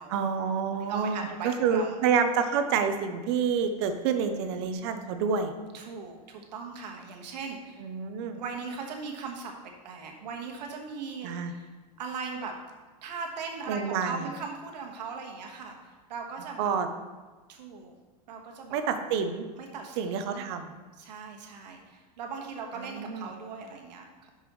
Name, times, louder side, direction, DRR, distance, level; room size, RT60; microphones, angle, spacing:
voice 1, 0.1-5.5 7.8-8.4 11.2-11.5 13.7-14.2 16.6-16.9 18.7-19.4 20.0-20.7 22.8-23.3, right 6 dB, 40° right, 8 dB, 0.6 m, -28 dB
voice 2, 0.8-2.0 5.7-7.9 8.3-9.5 9.8-11.7 12.0-12.6 13.0-16.7 17.5-18.0 18.3-18.8 19.6-20.4 21.0-24.3, right 5 dB, 90° right, 2 dB, 1.5 m, -39 dB
11.0 x 5.4 x 3.1 m, 1.3 s
supercardioid pair, 175°, 21 cm